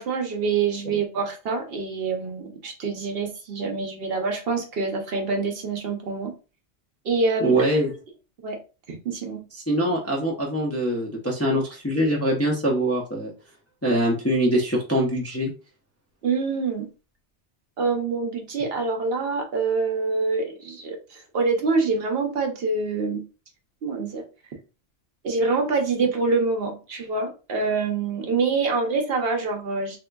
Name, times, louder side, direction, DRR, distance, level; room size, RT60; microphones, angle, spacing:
voice 1, 0.0-6.3 7.0-7.6 8.4-8.6 8.9-9.4 16.2-16.9 17.8-23.3 23.8-24.2 25.2-30.0, right 4 dB, 60° right, 3 dB, 0.9 m, -26 dB
voice 2, 7.4-7.9 9.7-13.3 13.8-15.5, right 1 dB, 20° left, -1 dB, 0.5 m, -23 dB
3.5 x 2.8 x 2.2 m, 0.33 s
omnidirectional pair, 1.2 m